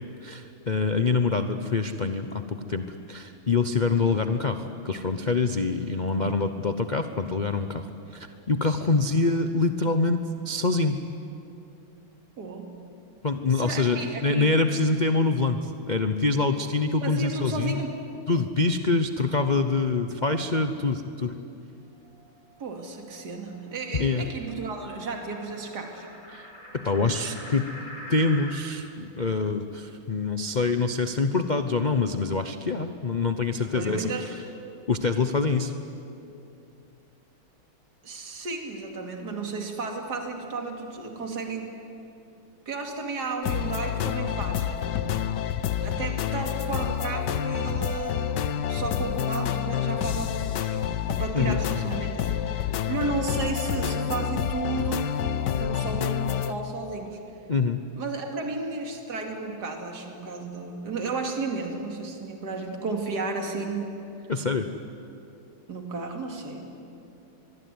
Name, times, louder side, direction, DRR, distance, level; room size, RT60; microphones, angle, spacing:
voice 1, 0.2-10.2 10.4-11.0 13.2-17.8 18.3-21.4 24.0-24.2 26.3-27.7 28.1-34.3 34.9-35.7 51.3-51.6 57.5-57.8 64.3-64.7, left 3 dB, 85° left, 8 dB, 0.4 m, -25 dB
voice 2, 12.4-12.8 13.5-14.5 17.0-18.0 22.6-26.1 33.7-34.2 38.0-41.7 42.7-45.1 45.8-48.4 48.7-57.2 58.0-63.9 65.7-66.9, right 3 dB, 50° right, 3 dB, 3.0 m, -33 dB
sound 1, 21.9-28.6, equal, 40° left, 4.9 m, -45 dB
sound 2, 43.4-56.5, left 9 dB, 65° left, 1.3 m, -28 dB
24.5 x 22.5 x 9.6 m, 2.7 s
omnidirectional pair, 2.3 m